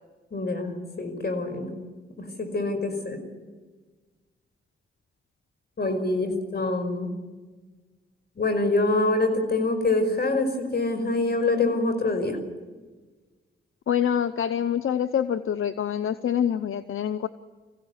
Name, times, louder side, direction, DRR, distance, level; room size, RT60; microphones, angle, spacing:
voice 1, 0.3-1.7 2.2-3.2 5.8-7.1 8.4-12.4, left 2 dB, 50° left, 7 dB, 5.3 m, -25 dB
voice 2, 13.9-17.3, left 9 dB, 80° left, 12 dB, 0.7 m, -26 dB
24.5 x 16.0 x 9.7 m, 1.4 s
cardioid pair, 75°, 21 cm